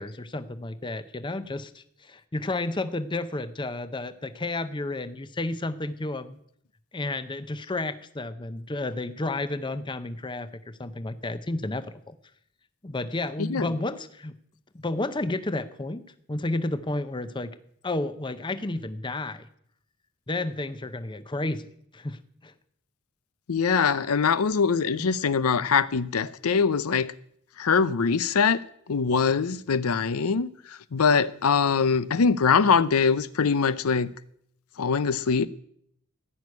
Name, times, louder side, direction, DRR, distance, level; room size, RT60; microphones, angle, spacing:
voice 1, 0.0-6.4 6.9-12.2 12.8-14.3 14.7-16.0 16.3-17.6 17.8-19.5 20.3-21.7 21.9-22.5 25.0-25.1, left 2 dB, 20° left, 0.7 m, -31 dB
voice 2, 13.4-13.7 23.5-27.1 27.6-28.6 28.9-34.1 34.8-35.5, left 5 dB, 85° left, 0.6 m, -23 dB
15.0 x 6.3 x 9.6 m
head